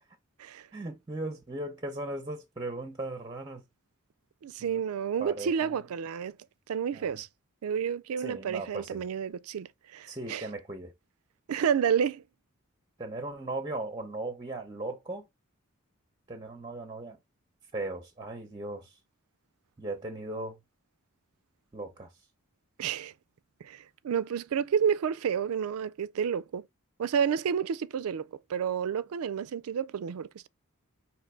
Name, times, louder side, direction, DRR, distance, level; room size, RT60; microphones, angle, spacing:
voice 1, 0.7-3.6 4.6-4.8 5.2-5.8 6.9-7.2 8.2-9.0 10.1-10.9 13.0-15.3 16.3-17.2 17.7-19.0 19.8-20.6 21.7-22.1, right 2 dB, 20° right, 0.6 m, -37 dB
voice 2, 4.4-6.4 6.7-7.3 7.6-10.5 11.5-12.2 22.8-23.1 23.6-26.6 27.0-30.5, right 7 dB, 80° right, 0.4 m, -30 dB
5.1 x 3.0 x 3.2 m
head